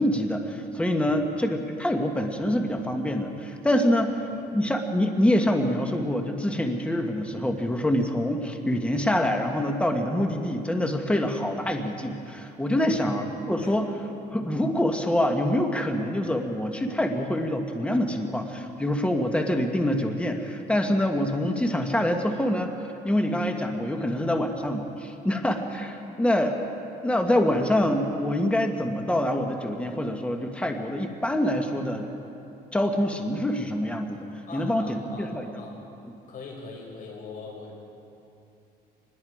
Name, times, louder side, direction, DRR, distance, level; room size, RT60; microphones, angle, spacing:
voice 1, 0.0-4.2 4.5-13.9 14.3-26.5 27.0-32.1 32.7-35.7, left 1 dB, 5° left, 4 dB, 1.6 m, -25 dB
voice 2, 34.5-35.8 36.3-37.8, left 4 dB, 55° left, -1 dB, 6.4 m, -41 dB
25.5 x 20.5 x 5.0 m, 2.7 s
cardioid pair, 110°, 17 cm